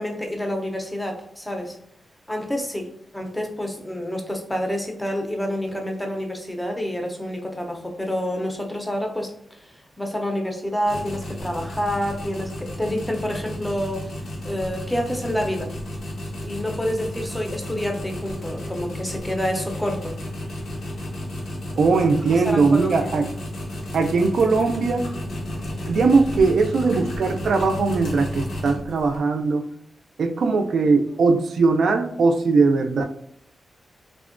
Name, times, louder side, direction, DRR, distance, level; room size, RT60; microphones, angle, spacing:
voice 1, 0.0-1.8 2.3-2.9 3.1-14.1 14.4-15.7 16.4-20.1 21.9-22.0 22.3-23.1, equal, 5° left, 2 dB, 0.5 m, -28 dB
sound 1, 10.8-29.2, left 1 dB, 90° left, 0.8 m, -32 dB
voice 2, 21.8-23.3 23.9-25.1 25.9-29.6 30.2-33.0, right 4 dB, 70° right, 5 dB, 0.3 m, -20 dB
3.4 x 2.1 x 2.4 m, 0.72 s
wide cardioid pair, 155°, 0 cm